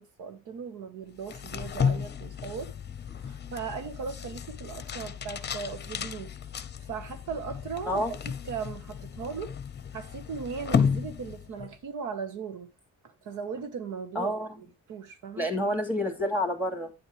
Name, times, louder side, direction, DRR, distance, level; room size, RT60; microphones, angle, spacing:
voice 1, 0.0-2.7 3.2-6.3 6.9-8.2 8.4-9.5 9.9-12.7 13.2-15.5, right 6 dB, 85° right, 1.4 m, -38 dB
sound 1, 1.2-11.8, left 7 dB, 35° left, 0.7 m, -33 dB
voice 2, 14.1-14.5 15.4-16.9, equal, 5° right, 2.5 m, -28 dB
9.2 x 7.6 x 3.3 m
cardioid pair, 90°, 30 cm